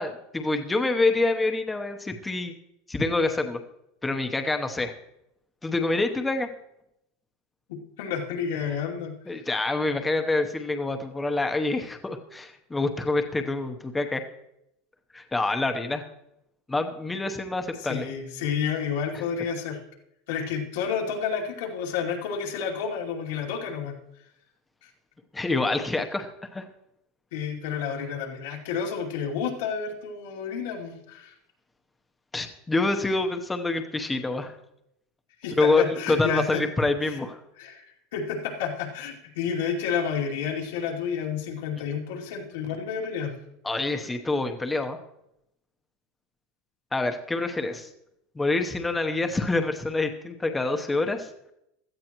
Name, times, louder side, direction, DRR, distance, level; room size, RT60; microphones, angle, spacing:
voice 1, 0.0-2.6 2.9-3.6 4.0-4.9 5.6-6.5 9.3-14.2 15.1-16.0 16.7-18.1 25.3-26.7 32.3-34.5 35.6-37.4 43.6-45.0 46.9-47.9 48.3-51.3, left 3 dB, 10° left, 5 dB, 0.9 m, -26 dB
voice 2, 7.7-9.2 17.9-19.8 20.3-24.0 24.8-24.9 27.3-31.3 35.4-36.7 37.1-37.2 37.6-43.4, left 7 dB, 80° left, -1 dB, 2.7 m, -30 dB
16.5 x 12.5 x 3.0 m, 0.81 s
supercardioid pair, 150°, 0 cm